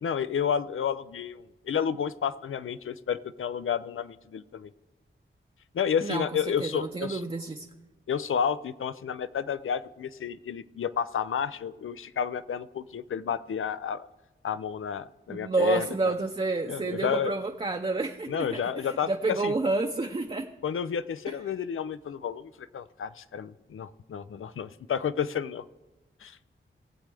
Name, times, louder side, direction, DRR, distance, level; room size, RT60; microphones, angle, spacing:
voice 1, 0.0-4.7 5.7-7.2 8.1-14.1 14.4-16.1 16.7-17.3 18.3-19.5 20.6-25.6 26.2-26.4, left 7 dB, 75° left, 14 dB, 0.5 m, -31 dB
voice 2, 6.6-7.7 15.3-20.5, right 3 dB, 25° right, 4 dB, 0.7 m, -29 dB
19.5 x 7.4 x 3.4 m, 1.1 s
wide cardioid pair, 60°, 21 cm